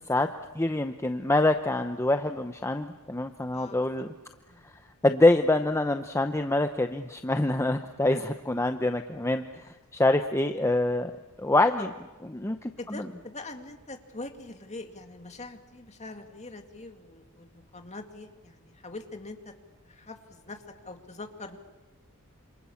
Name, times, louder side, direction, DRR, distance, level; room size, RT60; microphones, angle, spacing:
voice 1, 0.5-4.1 5.0-11.1 11.4-11.9 12.3-13.1, left 2 dB, 10° left, 7 dB, 0.8 m, -25 dB
voice 2, 12.8-19.5 19.9-21.6, left 2 dB, 30° left, 5 dB, 2.3 m, -43 dB
27.5 x 27.0 x 7.2 m, 1.2 s
head